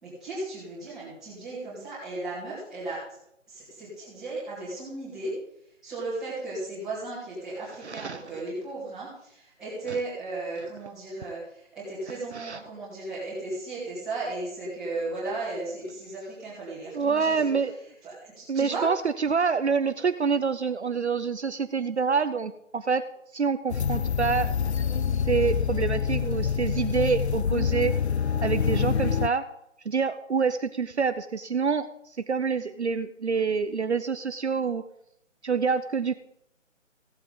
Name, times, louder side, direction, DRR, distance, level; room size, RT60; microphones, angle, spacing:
voice 1, 0.0-3.0 3.5-5.3 5.8-17.5 17.8-18.9, right 2 dB, ahead, -13 dB, 2.3 m, -35 dB
voice 2, 7.8-8.2 9.9-10.0 12.3-12.6 16.9-17.8 18.5-23.0 23.3-24.5 25.3-27.9 28.4-29.4 29.9-31.9 32.3-34.8 35.4-36.1, right 5 dB, 60° right, 11 dB, 0.7 m, -26 dB
sound 1, 23.7-29.3, left 7 dB, 60° left, 0.5 m, -26 dB
16.0 x 7.8 x 3.9 m, 0.76 s
figure-of-eight pair, 175°, 38 cm